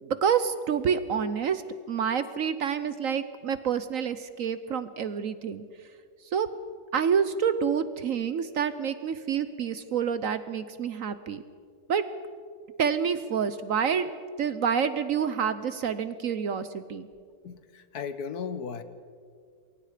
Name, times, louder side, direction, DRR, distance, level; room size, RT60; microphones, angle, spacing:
voice 1, 0.0-1.6 1.9-5.6 6.3-6.5 6.9-11.4 11.9-12.0 12.8-17.1, right 7 dB, 60° right, 12 dB, 1.0 m, -28 dB
voice 2, 17.4-18.8, left 6 dB, 65° left, 12 dB, 1.5 m, -36 dB
27.5 x 22.5 x 5.0 m, 2.1 s
omnidirectional pair, 1.8 m